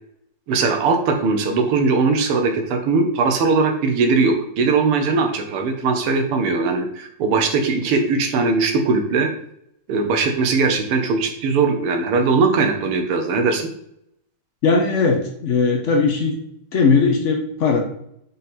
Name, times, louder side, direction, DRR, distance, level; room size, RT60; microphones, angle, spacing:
voice 1, 0.5-9.3 9.9-13.7, right 4 dB, 90° right, 5 dB, 1.9 m, -20 dB
voice 2, 14.6-16.4 16.7-17.8, left 4 dB, 80° left, 3 dB, 0.6 m, -18 dB
7.3 x 4.0 x 4.2 m, 0.74 s
omnidirectional pair, 2.4 m